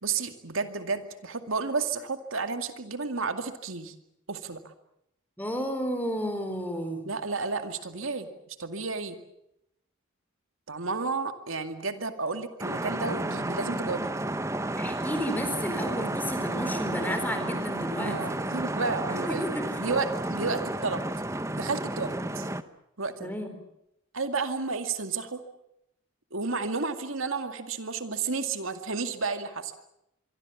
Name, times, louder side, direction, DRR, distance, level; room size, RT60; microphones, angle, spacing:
voice 1, 0.0-3.9 4.3-4.7 7.1-9.2 10.7-14.1 18.0-19.5 19.8-21.0 21.6-22.5 23.0-23.3 24.1-25.4 26.3-29.7, right 4 dB, 75° right, 8 dB, 2.2 m, -32 dB
voice 2, 5.4-7.0 14.8-18.4 19.3-19.6 22.3-22.4 23.2-23.5, equal, 10° left, 7 dB, 4.3 m, -32 dB
sound 1, 12.6-22.6, right 1 dB, 15° right, 0.9 m, -32 dB
25.5 x 24.0 x 7.2 m, 0.83 s
head